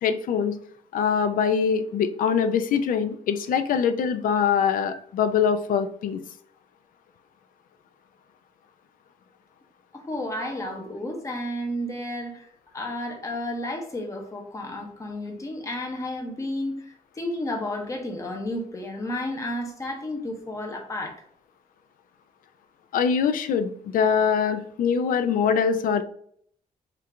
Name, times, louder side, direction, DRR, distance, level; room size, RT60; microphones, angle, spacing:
voice 1, 0.0-0.6 0.9-6.2 22.9-26.0, left 7 dB, 75° left, 10 dB, 0.4 m, -23 dB
voice 2, 9.9-12.5 12.7-21.2 24.4-24.5, left 1 dB, 20° left, 2 dB, 0.7 m, -32 dB
4.4 x 2.5 x 3.3 m, 0.64 s
wide cardioid pair, 175°, 14 cm